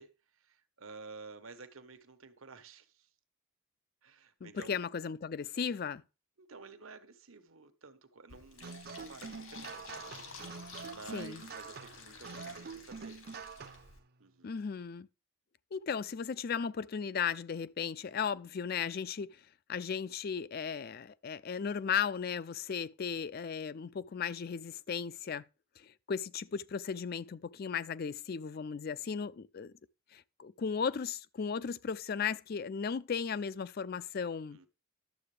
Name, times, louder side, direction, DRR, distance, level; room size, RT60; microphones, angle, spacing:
voice 1, 0.0-3.1 4.0-4.8 6.4-13.2 14.2-14.5 34.5-34.7, right 4 dB, 80° right, 1.2 m, -52 dB
voice 2, 4.4-6.0 11.1-11.4 14.4-15.1 15.7-19.4 19.7-25.4 25.8-29.7 30.1-34.6, left 6 dB, 45° left, 0.4 m, -36 dB
Fill (with liquid), 8.3-14.0, left 4 dB, 80° left, 2.5 m, -51 dB
sound 1, 8.6-13.9, right 5 dB, 50° right, 0.6 m, -46 dB
11.5 x 7.6 x 3.3 m
head